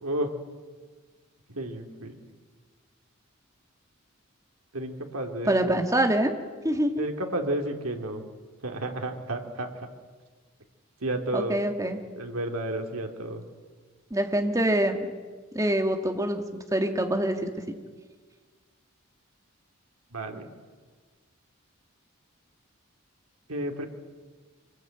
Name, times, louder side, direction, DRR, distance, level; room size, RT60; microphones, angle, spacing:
voice 1, 0.0-0.3 1.5-2.2 4.7-5.8 7.0-8.2 8.6-9.9 11.0-11.6 12.1-13.4 20.1-20.5 23.5-23.8, right 1 dB, 90° right, 3 dB, 3.0 m, -32 dB
voice 2, 5.5-6.3 6.6-7.0 11.3-12.0 14.1-15.0 15.5-16.4 16.7-17.5, right 1 dB, 15° right, 5 dB, 1.9 m, -25 dB
25.0 x 20.5 x 9.1 m, 1.5 s
head